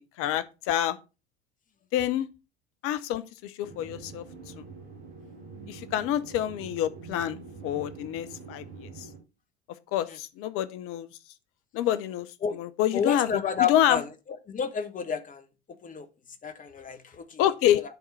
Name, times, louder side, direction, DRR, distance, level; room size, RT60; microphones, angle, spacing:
voice 1, 0.2-1.0 1.9-2.3 2.8-4.2 4.6-4.7 5.7-9.1 9.9-11.1 11.7-14.0 17.4-17.8, left 12 dB, 45° left, 0.6 m, -27 dB
sound 1, 3.6-9.2, right 4 dB, 65° right, 2.0 m, -45 dB
voice 2, 12.9-14.0 14.5-15.4 15.8-16.1 16.4-17.4, left 7 dB, 25° left, 1.0 m, -30 dB
10.5 x 3.6 x 4.1 m
figure-of-eight pair, 70°, 33 cm